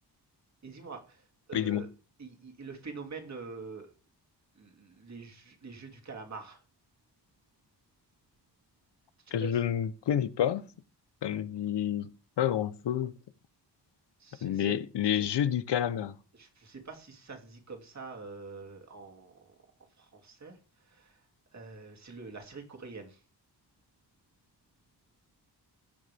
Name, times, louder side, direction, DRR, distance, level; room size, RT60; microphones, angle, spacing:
voice 1, 0.6-1.9 2.2-3.9 4.5-6.6 9.2-9.6 14.2-14.8 15.1-15.2 16.3-19.5 19.9-21.2 21.5-23.2, right 4 dB, 40° right, 2.8 m, -45 dB
voice 2, 1.5-1.8 9.3-10.6 11.2-12.1 12.4-13.1 14.4-16.1, left 10 dB, 80° left, 0.9 m, -29 dB
16.5 x 6.7 x 3.5 m
wide cardioid pair, 155°, 41 cm